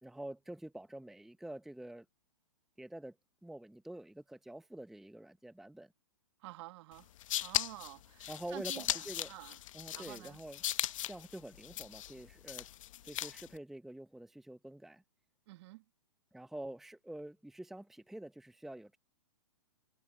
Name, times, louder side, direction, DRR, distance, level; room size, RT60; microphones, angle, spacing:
voice 1, 0.0-2.0 2.8-3.1 3.4-5.9 8.3-9.3 9.7-10.6 11.1-12.7 13.0-15.0 16.3-19.0, right 1 dB, ahead, 1.0 m, -47 dB
voice 2, 6.4-7.1 7.4-9.6 9.9-10.4 15.5-15.8, right 19 dB, 45° right, 1.9 m, -49 dB
sound 1, 7.0-13.6, left 13 dB, 55° left, 1.0 m, -38 dB
hypercardioid pair, 130°, 19 cm